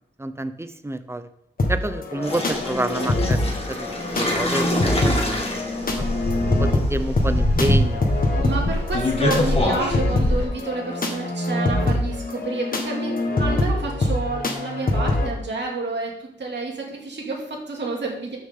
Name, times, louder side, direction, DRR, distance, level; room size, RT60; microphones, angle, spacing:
voice 1, 0.2-1.3 1.7-5.4 6.0-6.1 6.6-8.1, right 1 dB, 15° right, 11 dB, 0.7 m, -29 dB
sound 1, 1.6-15.3, left 2 dB, 50° left, 1.6 m, -25 dB
sound 2, 2.2-10.5, left 1 dB, 30° left, 2.1 m, -24 dB
voice 2, 8.4-16.1 16.4-18.4, right 3 dB, 65° right, -1 dB, 2.7 m, -29 dB
12.5 x 6.3 x 3.8 m, 0.77 s
cardioid pair, 75°, 19 cm